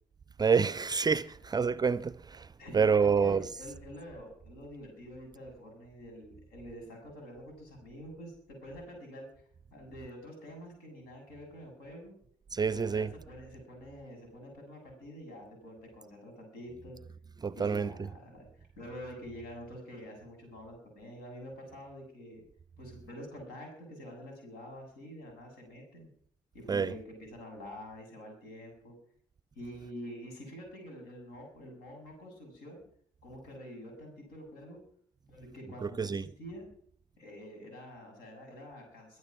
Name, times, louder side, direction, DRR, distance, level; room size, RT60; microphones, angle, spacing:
voice 1, 0.4-2.5 2.7-3.5 12.5-13.1 17.4-17.9 26.7-26.9 35.8-36.2, right 5 dB, 25° right, 0.6 m, -27 dB
voice 2, 2.6-9.3 9.7-12.2 12.6-17.0 17.5-22.4 22.8-26.1 26.5-28.9 29.6-32.8 33.2-34.8 35.3-36.7 37.2-39.2, equal, 65° left, 7.1 m, -47 dB
22.0 x 9.9 x 6.1 m
figure-of-eight pair, 45°, 17 cm